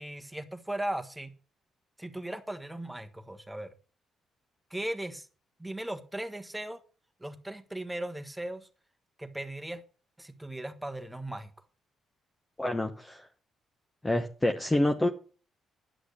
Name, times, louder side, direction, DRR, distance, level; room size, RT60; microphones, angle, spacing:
voice 1, 0.0-1.3 2.0-3.7 4.7-5.3 5.6-6.8 7.2-8.7 9.2-9.8 10.2-11.5, right 1 dB, 5° right, 7 dB, 1.3 m, -37 dB
voice 2, 12.6-13.3 14.0-15.1, left 1 dB, 15° left, 5 dB, 0.9 m, -27 dB
10.0 x 6.3 x 6.4 m, 0.38 s
cardioid pair, 90°, 0 cm